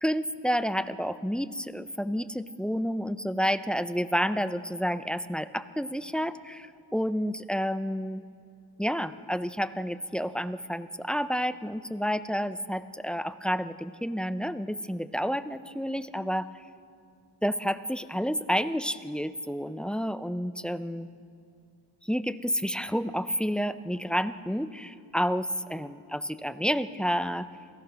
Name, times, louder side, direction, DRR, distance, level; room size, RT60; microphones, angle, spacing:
voice 1, 0.0-8.2 8.8-16.5 17.4-21.1 22.0-27.5, equal, ahead, 12 dB, 0.5 m, -30 dB
28.0 x 17.0 x 6.2 m, 2.4 s
wide cardioid pair, 115°, 42 cm